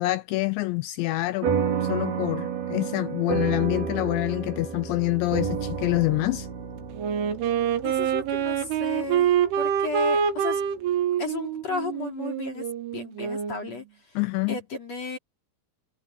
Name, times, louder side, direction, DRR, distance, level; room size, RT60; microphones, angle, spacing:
voice 1, 0.0-1.5 1.8-6.5 14.2-14.6, left 20 dB, 85° left, 2.6 m, -26 dB
sound 1, 1.4-10.2, right 6 dB, 55° right, 4.7 m, -31 dB
Wind instrument woodwind instrument, 7.0-13.7, right 8 dB, 75° right, 4.3 m, -26 dB
voice 2, 7.8-10.6 11.2-12.7 12.9-13.8 14.5-15.2, left 4 dB, 35° left, 4.2 m, -34 dB
omnidirectional pair, 5.7 m